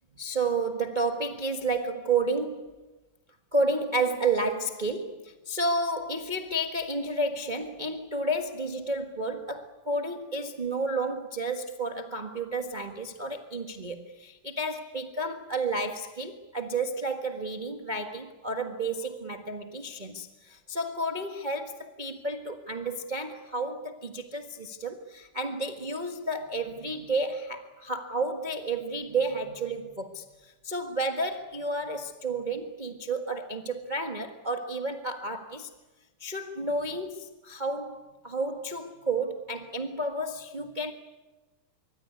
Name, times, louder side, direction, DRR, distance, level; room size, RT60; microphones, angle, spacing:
voice 1, 0.2-2.7 3.5-35.7 36.2-40.9, right 2 dB, 55° right, 0.4 m, -31 dB
25.0 x 24.5 x 9.6 m
omnidirectional pair, 3.7 m